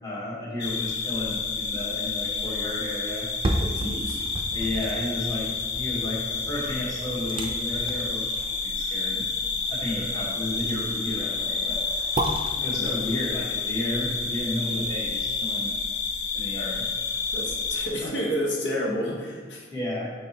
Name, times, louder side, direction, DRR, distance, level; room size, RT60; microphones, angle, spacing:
voice 1, 0.0-3.3 4.5-8.3 8.6-11.8 12.6-15.7 16.3-16.8 19.7-20.1, left 1 dB, 20° left, -5 dB, 1.2 m, -32 dB
sound 1, 0.6-17.9, left 4 dB, 60° left, 0.6 m, -29 dB
sound 2, 3.1-15.2 15.6-15.7, right 1 dB, 30° right, 0.4 m, -34 dB
voice 2, 3.6-4.2 12.4-12.9 17.3-19.7, equal, 90° left, -2 dB, 1.2 m, -30 dB
8.8 x 4.1 x 2.9 m, 1.4 s
head